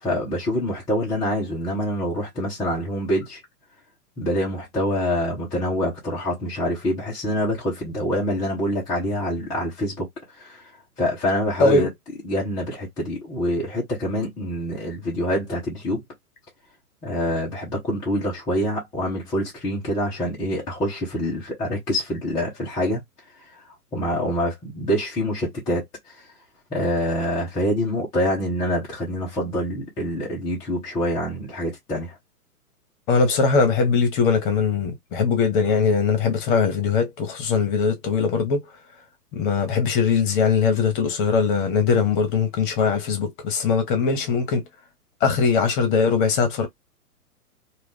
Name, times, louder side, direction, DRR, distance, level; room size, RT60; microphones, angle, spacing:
voice 1, 0.0-3.4 4.2-10.1 10.4-10.6 11.0-11.9 12.2-16.0 17.0-23.0 23.9-25.8 26.7-32.1, equal, 10° left, 0.5 m, -25 dB
voice 2, 33.1-38.6 39.3-44.6 45.2-46.7, left 5 dB, 35° left, 1.0 m, -21 dB
2.4 x 2.3 x 3.5 m
figure-of-eight pair, 120°, 46 cm